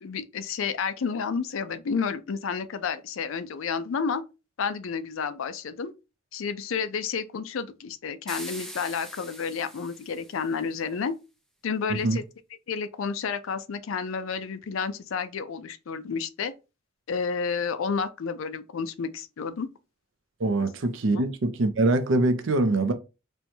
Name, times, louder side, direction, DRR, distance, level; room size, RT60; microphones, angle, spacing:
voice 1, 0.0-4.2 4.6-5.9 6.3-11.1 11.6-12.2 12.7-16.5 17.1-19.7 21.1-21.2, left 5 dB, 70° left, 0.4 m, -30 dB
sound 1, 8.3-10.7, equal, ahead, 0.4 m, -42 dB
voice 2, 20.4-22.9, right 2 dB, 60° right, 0.5 m, -24 dB
4.3 x 2.2 x 2.7 m
head